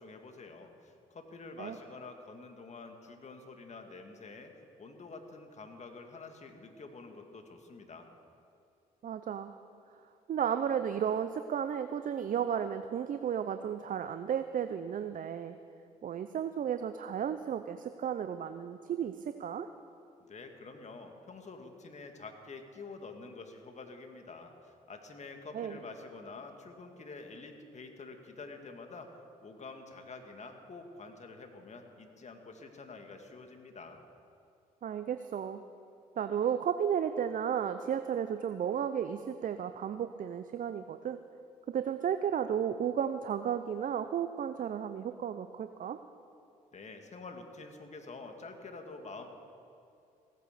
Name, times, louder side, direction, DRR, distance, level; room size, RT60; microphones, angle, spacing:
voice 1, 0.0-4.5 4.8-8.1 20.2-29.1 29.4-34.0 46.7-49.3, left 3 dB, 40° left, 5 dB, 2.0 m, -48 dB
voice 2, 9.0-9.6 10.3-15.6 16.0-19.7 25.5-25.8 34.8-35.6 36.2-41.2 41.7-46.0, right 8 dB, 50° right, 10 dB, 0.6 m, -33 dB
16.5 x 9.3 x 6.7 m, 2.6 s
hypercardioid pair, 55°, 17 cm